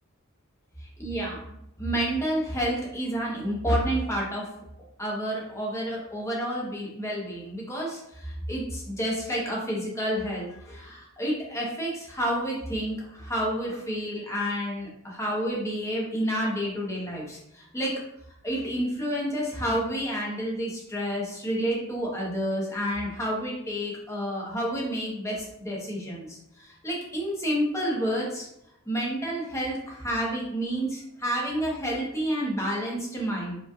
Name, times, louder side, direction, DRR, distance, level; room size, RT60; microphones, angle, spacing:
voice 1, 1.0-1.4 1.8-4.5 5.0-18.0 18.4-28.5 28.9-33.6, equal, 15° left, -3 dB, 1.0 m, -29 dB
5.0 x 3.2 x 2.4 m, 0.81 s
head